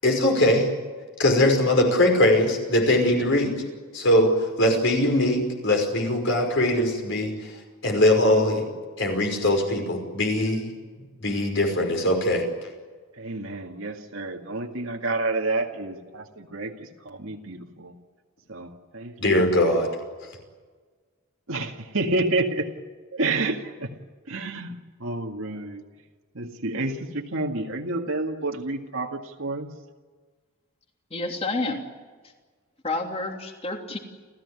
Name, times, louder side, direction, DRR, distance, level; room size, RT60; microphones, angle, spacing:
voice 1, 0.0-0.7 1.2-3.6 3.9-7.5 7.8-8.7 9.0-10.7 11.2-12.4 19.2-19.9, left 1 dB, 60° left, 3 dB, 5.4 m, -21 dB
voice 2, 13.2-17.9 18.5-19.6 21.5-22.7 23.1-23.9 24.3-24.7 25.0-25.8 26.3-29.7, right 2 dB, 75° right, 1 dB, 2.1 m, -29 dB
voice 3, 31.1-31.8 32.8-34.0, left 2 dB, 30° left, 3 dB, 3.1 m, -29 dB
30.0 x 15.0 x 9.9 m, 1.4 s
head